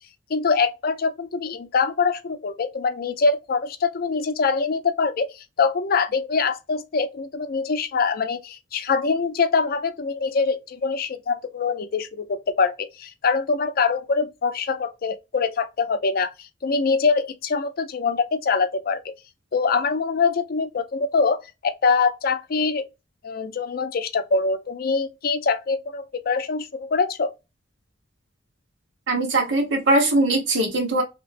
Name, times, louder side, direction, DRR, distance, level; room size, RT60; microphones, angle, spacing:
voice 1, 0.3-19.1 19.5-22.8 23.2-27.3, left 4 dB, 50° left, 0.4 m, -24 dB
voice 2, 29.1-31.0, right 2 dB, 85° right, 1.2 m, -21 dB
3.1 x 2.9 x 2.5 m
head